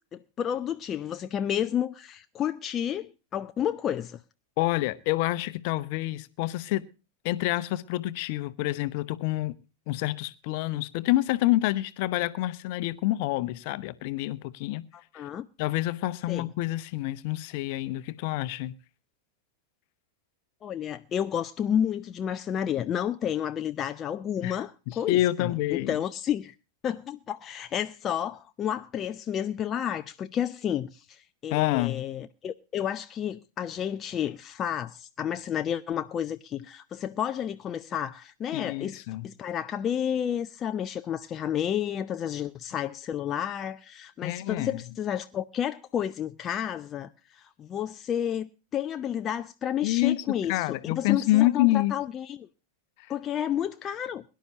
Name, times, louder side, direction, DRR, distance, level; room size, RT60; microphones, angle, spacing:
voice 1, 0.1-4.2 14.9-15.5 16.3-16.5 20.6-26.5 26.8-52.5 53.1-54.2, left 9 dB, 25° left, 0.6 m, -31 dB
voice 2, 4.6-6.8 7.2-9.6 9.9-14.8 15.1-15.2 15.6-18.7 24.4-24.6 24.9-26.0 31.5-32.0 38.5-39.3 44.2-44.8 49.8-50.2 50.5-51.9, left 17 dB, 45° left, 0.9 m, -27 dB
22.5 x 11.5 x 2.8 m
figure-of-eight pair, 90°, 0 cm